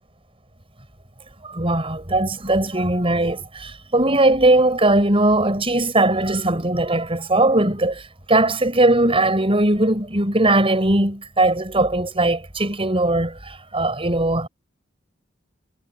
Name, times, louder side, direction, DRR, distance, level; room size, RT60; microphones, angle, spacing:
voice 1, 1.4-14.5, right 2 dB, 30° right, 6.4 m, -19 dB
head